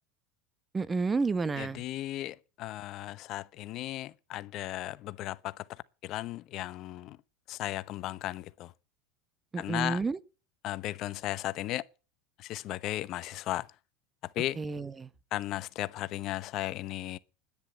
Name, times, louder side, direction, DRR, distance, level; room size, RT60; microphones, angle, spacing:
voice 1, 0.7-1.8 9.5-10.2 14.6-15.1, right 4 dB, 20° right, 0.9 m, -30 dB
voice 2, 1.6-5.6 6.0-7.2 7.5-8.7 9.6-10.0 10.6-11.8 12.4-13.7 14.4-14.6 15.3-17.2, left 15 dB, 50° left, 0.8 m, -35 dB
10.0 x 9.8 x 8.9 m
supercardioid pair, 110°, 0 cm